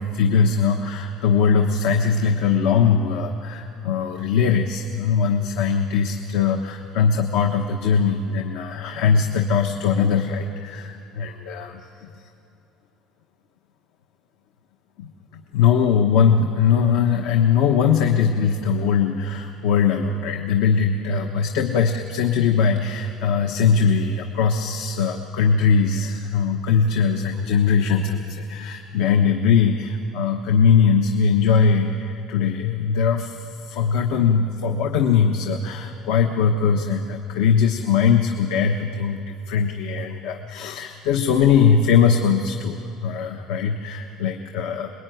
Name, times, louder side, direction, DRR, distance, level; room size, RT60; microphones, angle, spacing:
voice 1, 0.0-11.8 15.5-33.4 33.7-42.8 43.0-44.9, left 6 dB, 75° left, 4 dB, 1.2 m, -20 dB
25.5 x 21.0 x 9.3 m, 2.8 s
cardioid pair, 180°, 0 cm